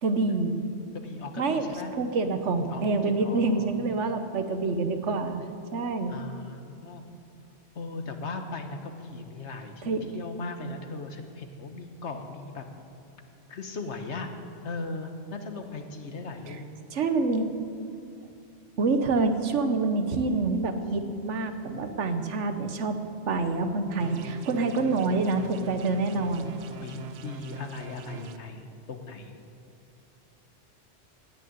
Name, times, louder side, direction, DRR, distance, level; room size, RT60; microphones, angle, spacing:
voice 1, 0.0-0.5 1.4-1.7 1.9-5.4 5.7-6.2 9.8-10.0 16.5-16.6 16.9-17.5 18.8-23.0 23.3-26.5, right 3 dB, 85° right, 8 dB, 1.3 m, -27 dB
voice 2, 0.9-1.9 2.7-3.9 6.1-7.1 7.7-12.6 13.5-14.3 14.6-16.7 26.8-29.4, left 3 dB, 75° left, 6 dB, 1.5 m, -38 dB
sound 1, 24.0-28.4, right 7 dB, 70° right, 0.9 m, -42 dB
18.0 x 6.6 x 9.3 m, 2.6 s
omnidirectional pair, 1.2 m